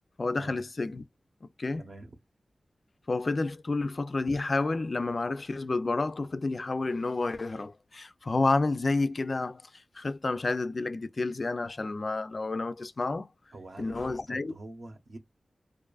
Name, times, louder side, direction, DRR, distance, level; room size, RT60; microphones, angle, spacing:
voice 1, 0.2-1.0 1.6-1.8 3.1-9.6 9.9-13.3 13.8-14.5, left 3 dB, 45° left, 0.3 m, -30 dB
voice 2, 1.8-2.2 13.5-15.2, right 2 dB, 60° right, 0.8 m, -45 dB
2.5 x 2.4 x 2.3 m
wide cardioid pair, 100°, 0 cm